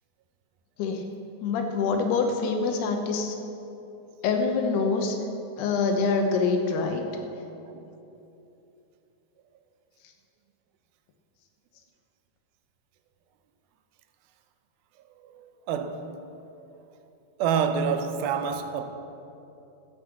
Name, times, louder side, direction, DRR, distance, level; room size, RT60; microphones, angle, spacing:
voice 1, 1.4-3.4 4.2-5.2 5.6-7.1, left 4 dB, 90° left, 3.1 m, -25 dB
voice 2, 15.2-16.2 17.4-18.8, right 6 dB, 80° right, 2.4 m, -28 dB
14.5 x 8.4 x 7.0 m
omnidirectional pair, 4.5 m